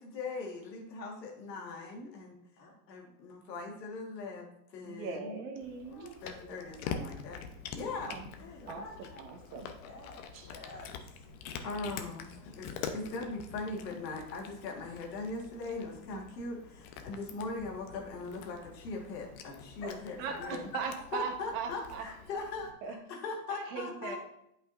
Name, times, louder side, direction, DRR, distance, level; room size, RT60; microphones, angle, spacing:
voice 1, 0.0-2.4 2.9-5.4 6.2-7.4 7.7-8.5 11.6-20.7 21.1-24.2, left 3 dB, 75° left, 0 dB, 1.9 m, -40 dB
voice 2, 1.6-2.0 2.6-2.7 5.9-7.1 8.4-9.3 9.8-10.9 19.8-19.9 20.4-20.5, left 2 dB, 35° left, -3 dB, 2.8 m, -49 dB
voice 3, 4.8-6.2 8.1-8.3 8.7-8.8 9.2-9.7 10.3-10.5 16.1-16.2 20.2-22.0 22.8-22.9 23.5-24.2, right 5 dB, 50° right, 3 dB, 1.4 m, -39 dB
Cat, 5.6-22.7, left 6 dB, 55° left, 1.0 m, -46 dB
8.6 x 5.4 x 2.6 m, 0.78 s
hypercardioid pair, 115°, 50 cm